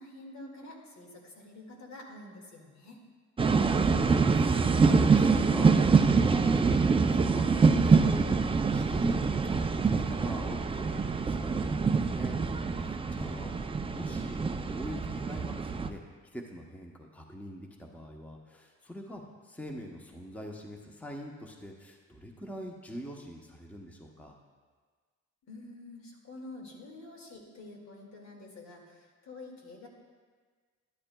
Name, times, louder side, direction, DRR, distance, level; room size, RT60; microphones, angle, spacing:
voice 1, 0.0-3.0 25.5-29.9, left 2 dB, 70° left, 0 dB, 2.1 m, -48 dB
voice 2, 3.4-13.6 13.9-16.0 16.3-24.4, equal, 5° left, 1 dB, 0.9 m, -43 dB
sound 1, 3.4-15.9, right 4 dB, 20° right, 0.4 m, -25 dB
12.0 x 11.5 x 2.3 m, 1.5 s
cardioid pair, 90°, 30 cm